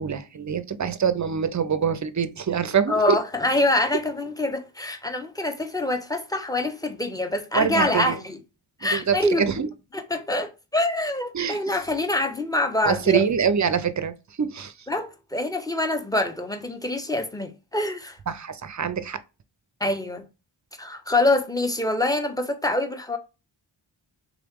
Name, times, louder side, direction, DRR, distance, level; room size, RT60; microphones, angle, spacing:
voice 1, 0.0-3.2 7.5-8.2 8.8-9.7 11.3-11.6 12.9-14.7 18.3-19.2, right 7 dB, 40° right, 0.4 m, -25 dB
voice 2, 2.9-8.4 8.8-9.4 9.9-13.3 14.9-18.2 19.8-20.3 20.8-23.2, left 2 dB, 10° left, 0.6 m, -25 dB
3.6 x 3.0 x 3.5 m
wide cardioid pair, 80°, 49 cm